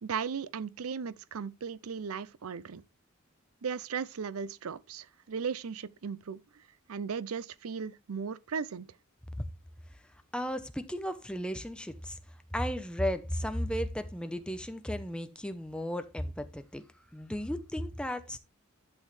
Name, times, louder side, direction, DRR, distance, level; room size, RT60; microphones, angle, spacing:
voice 1, 0.0-2.8 3.6-6.6 6.9-8.9, right 6 dB, 85° right, 0.5 m, -37 dB
voice 2, 10.3-12.2 12.5-16.8 17.1-18.4, equal, 5° left, 0.8 m, -34 dB
11.5 x 6.3 x 3.2 m
head